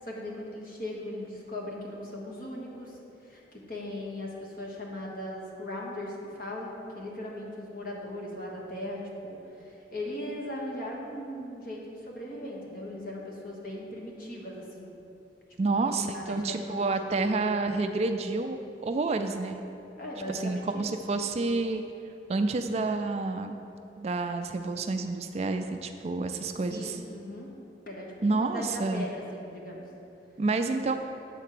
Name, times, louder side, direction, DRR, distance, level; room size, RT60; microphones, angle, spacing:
voice 1, 0.0-2.9 3.2-3.4 3.7-14.9 15.6-17.4 20.0-20.9 26.7-27.5 27.9-29.8, left 1 dB, 50° left, -3 dB, 1.4 m, -38 dB
voice 2, 15.6-19.6 20.3-21.8 22.3-23.6 24.0-27.0 28.2-29.1 30.4-30.9, right 3 dB, 35° right, 7 dB, 0.3 m, -29 dB
8.2 x 4.2 x 6.7 m, 2.8 s
head